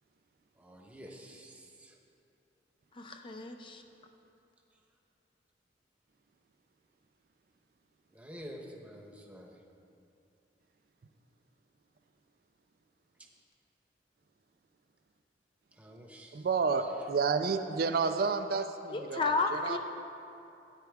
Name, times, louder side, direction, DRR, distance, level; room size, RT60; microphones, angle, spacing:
voice 1, 0.6-2.0 8.1-9.6 13.2-13.3 15.8-16.5 16.8-16.9, equal, 10° right, 0 dB, 1.0 m, -49 dB
voice 2, 3.0-3.8 18.9-19.8, left 4 dB, 30° left, 5 dB, 0.5 m, -32 dB
voice 3, 16.3-19.8, right 5 dB, 55° right, 8 dB, 0.4 m, -30 dB
13.5 x 9.2 x 3.6 m, 2.8 s
head